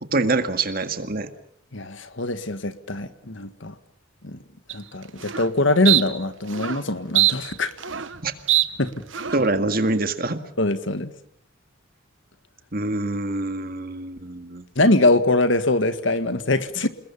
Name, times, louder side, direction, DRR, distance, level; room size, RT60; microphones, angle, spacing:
voice 1, 0.1-1.3 8.2-8.3 9.3-10.4 12.7-14.7, right 2 dB, 45° right, 8 dB, 1.9 m, -25 dB
voice 2, 1.7-3.7 4.2-4.4 4.7-7.7 8.8-8.9 10.6-11.1 14.8-16.9, left 2 dB, 60° left, 11 dB, 1.7 m, -22 dB
sound 1, 4.7-4.8 5.2-5.5 5.8-6.0 6.5-6.8 7.1-8.2 8.5-8.6 9.1-9.5, right 14 dB, 65° right, 1.1 m, -22 dB
28.5 x 21.0 x 7.3 m, 0.68 s
head